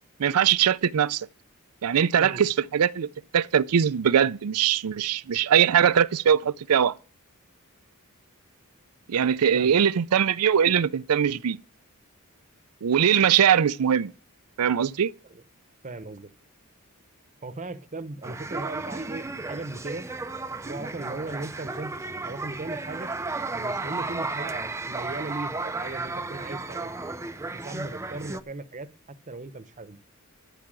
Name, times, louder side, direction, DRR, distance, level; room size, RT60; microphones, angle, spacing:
voice 1, 0.2-1.3 1.8-6.9 9.1-11.6 12.8-14.1 14.6-15.1, right 8 dB, 85° right, 0.5 m, -21 dB
voice 2, 15.8-16.3 17.4-20.0 20.6-23.1 23.5-26.9 27.5-28.9 29.3-30.0, right 2 dB, 35° right, 0.9 m, -37 dB
sound 1, 18.2-28.4, right 3 dB, 15° right, 0.5 m, -34 dB
12.5 x 5.8 x 7.6 m
head